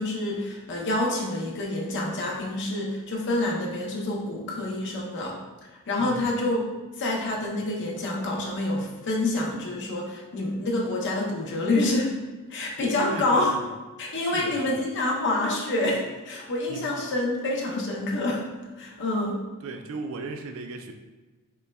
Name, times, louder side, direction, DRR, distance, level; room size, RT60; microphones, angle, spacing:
voice 1, 0.0-5.3 5.9-6.6 7.0-12.1 12.5-13.5 14.0-18.4 18.8-19.4, left 2 dB, 55° left, -2 dB, 0.7 m, -27 dB
voice 2, 6.0-6.3 13.0-13.7 14.0-14.9 16.7-17.0 19.6-20.9, right 3 dB, 60° right, 5 dB, 0.4 m, -36 dB
5.2 x 2.2 x 2.3 m, 1.2 s
head